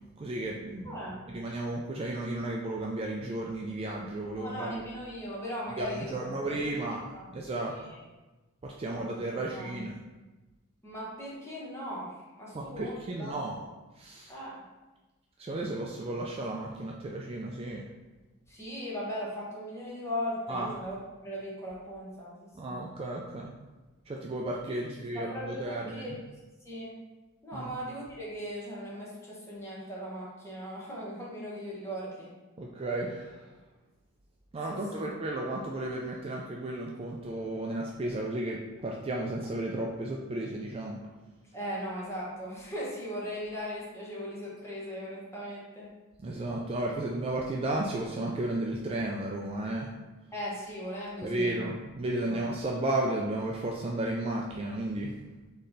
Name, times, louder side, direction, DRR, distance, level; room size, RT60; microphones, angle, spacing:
voice 1, 0.2-1.0 1.3-4.8 5.8-7.9 8.6-9.9 12.5-13.6 14.0-14.3 15.4-17.8 20.5-20.7 22.6-23.5 24.1-26.2 27.5-27.7 32.6-33.5 34.5-41.0 46.2-49.9 51.2-55.1, right 1 dB, 25° right, -1 dB, 0.3 m, -33 dB
voice 2, 0.8-1.2 4.4-6.8 7.1-7.3 7.7-8.0 8.9-9.0 9.4-9.7 10.8-13.4 14.3-14.6 18.5-21.0 21.2-22.8 24.8-26.2 26.6-27.0 27.4-32.3 34.7-35.0 41.5-45.9 50.3-51.5 52.3-52.4, equal, 10° left, -6 dB, 1.1 m, -38 dB
4.1 x 3.2 x 3.9 m, 1.2 s
head